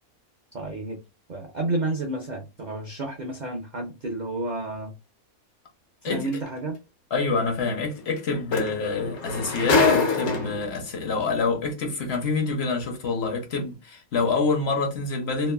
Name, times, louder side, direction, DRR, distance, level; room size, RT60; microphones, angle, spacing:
voice 1, 0.5-1.0 1.3-4.9 6.0-6.8, right 2 dB, 75° right, 0.4 m, -30 dB
sound 1, 6.3-6.5 8.2-8.3 8.5-10.8 11.7-11.8, left 3 dB, 80° left, 1.3 m, -23 dB
voice 2, 7.1-15.5, left 4 dB, 55° left, 0.8 m, -27 dB
3.0 x 2.2 x 2.2 m
omnidirectional pair, 1.5 m